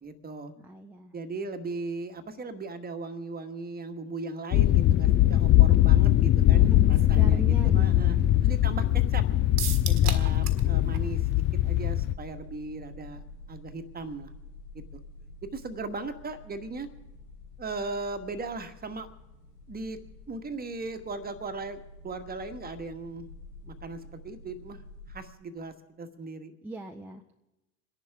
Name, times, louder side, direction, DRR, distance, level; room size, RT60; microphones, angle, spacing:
voice 1, 0.0-0.5 1.1-8.2 8.4-9.2 9.9-13.2 13.5-14.3 14.9-15.0 15.4-16.9 17.6-19.1 19.7-20.0 20.3-23.2 23.6-24.8 25.1-26.5, right 3 dB, 20° right, 8 dB, 1.5 m, -38 dB
voice 2, 0.6-1.1 6.5-8.3 26.6-27.3, right 1 dB, 5° right, 1 dB, 0.8 m, -39 dB
sound 1, 4.5-12.1, left 14 dB, 25° left, 0.4 m, -21 dB
sound 2, 7.5-25.2, left 2 dB, 90° left, 3.7 m, -46 dB
sound 3, 9.6-10.7 10.9-11.0 11.4-11.5, right 8 dB, 80° right, 1.5 m, -34 dB
28.0 x 11.0 x 3.6 m, 1.0 s
hypercardioid pair, 80°, 45 cm